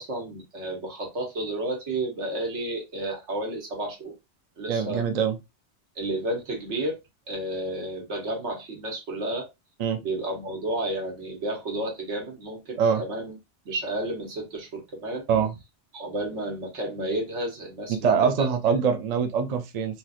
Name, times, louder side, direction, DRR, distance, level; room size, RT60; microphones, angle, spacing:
voice 1, 0.0-4.1 4.6-5.0 6.0-7.0 7.3-9.5 10.0-13.4 13.6-15.2 15.9-18.5, right 1 dB, 80° right, 1.4 m, -31 dB
voice 2, 4.7-5.4 9.8-10.0 12.8-13.0 15.3-15.5 18.0-20.0, right 6 dB, 50° right, 0.5 m, -23 dB
3.0 x 2.9 x 2.4 m
omnidirectional pair, 1.2 m